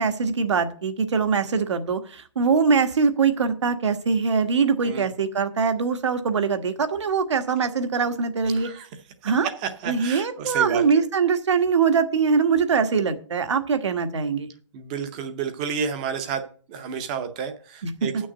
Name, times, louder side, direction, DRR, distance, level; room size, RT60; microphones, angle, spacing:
voice 1, 0.0-8.7 9.2-9.5 9.8-14.5 17.8-18.3, right 5 dB, 70° right, 1.4 m, -22 dB
voice 2, 8.5-8.9 9.2-11.0 14.7-18.3, right 7 dB, 15° right, 0.7 m, -31 dB
8.4 x 6.3 x 7.9 m
hypercardioid pair, 175°, 16 cm